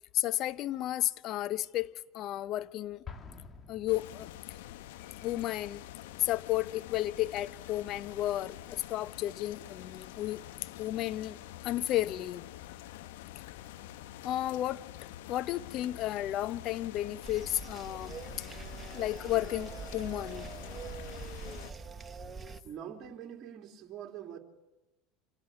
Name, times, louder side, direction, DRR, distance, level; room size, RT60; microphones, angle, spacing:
voice 1, 0.1-3.0 3.7-4.3 5.2-5.8 6.2-10.4 10.8-11.4 11.6-12.4 14.2-14.8 15.3-18.6 18.9-20.5, left 14 dB, 55° left, 0.9 m, -33 dB
Explosion, 3.0-4.8, left 5 dB, 30° left, 2.3 m, -48 dB
sound 1, 3.9-21.7, left 14 dB, 75° left, 0.9 m, -47 dB
sound 2, 17.2-22.6, right 5 dB, 25° right, 1.1 m, -44 dB
voice 2, 22.6-24.4, right 9 dB, 45° right, 2.9 m, -44 dB
27.5 x 17.0 x 9.9 m
hypercardioid pair, 80°, 0 cm